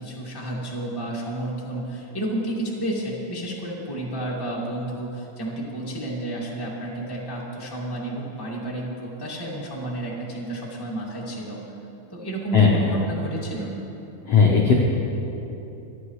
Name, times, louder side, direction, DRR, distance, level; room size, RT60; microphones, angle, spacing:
voice 1, 0.0-11.6 12.1-13.7, right 1 dB, 10° left, -5 dB, 1.2 m, -31 dB
voice 2, 14.2-14.8, left 5 dB, 80° left, -2 dB, 1.4 m, -16 dB
26.0 x 10.5 x 3.2 m, 3.0 s
omnidirectional pair, 4.5 m